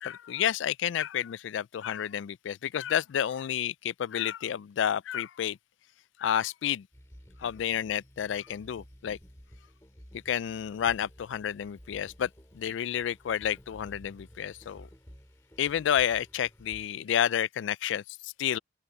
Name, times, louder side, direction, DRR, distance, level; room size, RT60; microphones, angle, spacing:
voice 1, 0.0-5.6 6.2-6.9 7.4-9.2 10.3-12.3 12.5-14.9 15.6-18.6, left 9 dB, 75° left, 0.3 m, -30 dB
sound 1, 6.9-16.9, equal, 15° left, 6.4 m, -53 dB
open air
head